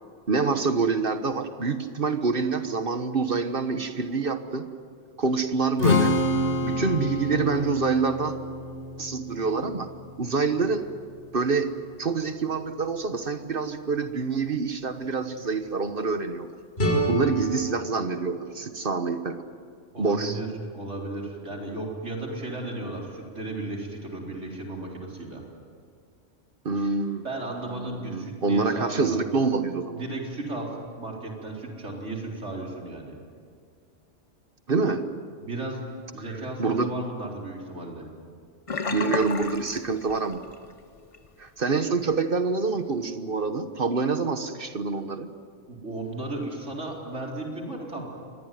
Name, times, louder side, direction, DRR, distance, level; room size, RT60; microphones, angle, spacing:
voice 1, 0.3-4.7 5.2-6.1 6.6-8.3 9.0-9.9 10.2-10.8 11.3-11.7 12.0-16.5 17.1-19.4 20.0-20.4 26.6-27.2 27.7-30.0 34.7-35.1 36.6-36.9 38.9-40.4 41.4-45.3, right 4 dB, 50° right, 9 dB, 1.4 m, -26 dB
Strum, 5.8-12.1, left 2 dB, 70° left, 1.8 m, -28 dB
sound 1, 16.8-19.7, right 1 dB, 55° left, 5.7 m, -29 dB
voice 2, 19.9-20.5 20.7-25.4 26.8-27.0 27.2-29.2 29.9-30.7 31.0-33.2 35.4-35.8 36.1-38.1 45.7-48.1, right 2 dB, 75° right, -1 dB, 4.5 m, -34 dB
Sink (filling or washing), 38.7-40.7 41.0-41.3 41.7-41.8, left 4 dB, 30° left, 0.9 m, -32 dB
25.5 x 20.0 x 9.4 m, 2.1 s
omnidirectional pair, 1.2 m